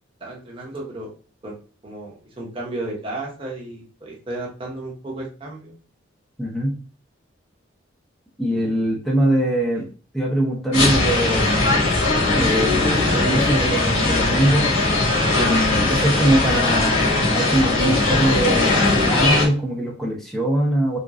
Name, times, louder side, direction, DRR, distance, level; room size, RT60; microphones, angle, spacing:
voice 1, 0.2-1.1 1.4-1.5 1.8-5.7 8.5-8.9 9.7-9.9, right 2 dB, 25° right, -2 dB, 0.9 m, -34 dB
voice 2, 6.4-6.8 8.4-9.9 10.1-11.9 12.3-14.7 15.3-21.0, right 1 dB, ahead, -3 dB, 0.7 m, -22 dB
sound 1, 10.7-19.5, left 2 dB, 75° left, 1.3 m, -19 dB
3.6 x 3.0 x 2.4 m, 0.37 s
head